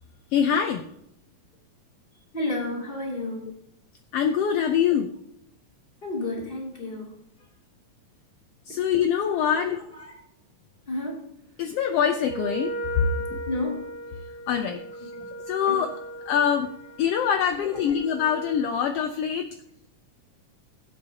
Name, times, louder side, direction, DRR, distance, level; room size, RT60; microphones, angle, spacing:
voice 1, 0.3-0.8 4.1-5.1 8.7-9.8 11.6-12.7 13.3-13.4 14.5-14.8 15.5-15.9 16.3-16.7 17.0-19.5, left 8 dB, 75° left, 6 dB, 1.4 m, -24 dB
voice 2, 2.3-3.5 6.0-7.2 8.7-8.8 9.4-10.2 10.9-11.2 13.1-13.8 15.1-15.2 15.7-15.8 17.6-17.8, left 2 dB, 20° left, -1 dB, 2.6 m, -32 dB
Wind instrument woodwind instrument, 12.2-18.9, right 1 dB, 65° right, 2.0 m, -37 dB
16.5 x 7.8 x 2.9 m, 0.74 s
omnidirectional pair, 3.4 m